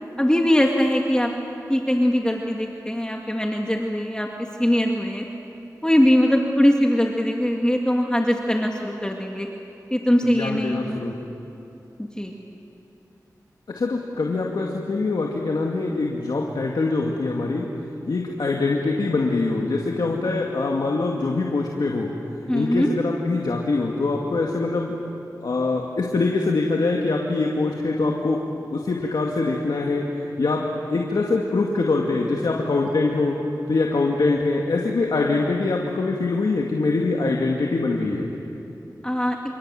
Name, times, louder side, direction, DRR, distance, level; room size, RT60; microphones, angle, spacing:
voice 1, 0.2-1.3 1.7-5.2 5.8-9.5 9.9-11.0 12.2-12.3 22.5-22.9 39.0-39.4, equal, 10° left, 1 dB, 2.2 m, -21 dB
voice 2, 10.2-11.1 13.7-17.7 18.1-22.1 22.5-24.9 25.4-28.4 28.7-33.4 33.7-38.3, left 3 dB, 85° left, -1 dB, 2.2 m, -23 dB
28.0 x 26.5 x 7.8 m, 2.9 s
wide cardioid pair, 50°, 7 cm